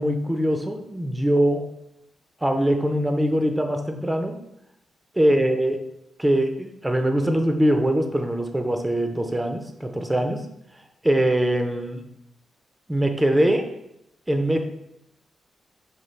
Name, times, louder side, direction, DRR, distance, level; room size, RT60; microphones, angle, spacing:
voice 1, 0.0-1.7 2.4-4.4 5.1-5.8 6.2-10.5 11.0-12.0 12.9-13.7 14.3-14.6, right 1 dB, 10° right, 5 dB, 0.4 m, -22 dB
5.1 x 2.4 x 3.1 m, 0.81 s
cardioid pair, 80°, 0 cm